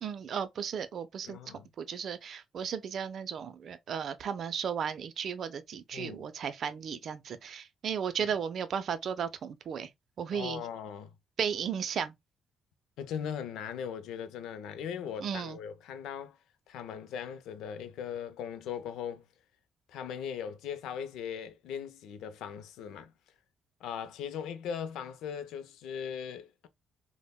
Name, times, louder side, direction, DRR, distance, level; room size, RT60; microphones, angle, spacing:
voice 1, 0.0-9.9 10.2-10.6 11.4-12.1 15.2-15.6, right 7 dB, 60° right, 0.4 m, -35 dB
voice 2, 1.2-1.7 5.9-6.2 10.3-11.1 13.0-16.4 16.7-19.2 19.9-23.1 23.8-26.7, left 8 dB, 85° left, 0.4 m, -39 dB
3.4 x 2.1 x 2.2 m
cardioid pair, 90°, 0 cm